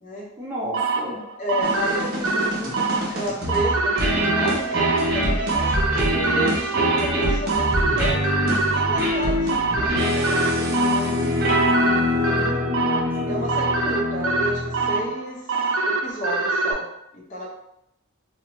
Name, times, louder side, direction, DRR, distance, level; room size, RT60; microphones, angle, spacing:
voice 1, 0.4-1.2 12.3-13.4, equal, 10° right, -4 dB, 0.5 m, -33 dB
sound 1, 0.7-16.7, right 3 dB, 85° right, 0.4 m, -25 dB
voice 2, 1.4-5.7 6.2-8.3 8.7-11.2 11.9-12.5 13.3-15.4 15.9-16.9 17.1-17.5, right 1 dB, 35° left, -4 dB, 0.6 m, -32 dB
sound 2, 1.6-15.1, equal, 45° right, 0.7 m, -24 dB
2.5 x 2.1 x 2.9 m, 0.82 s
head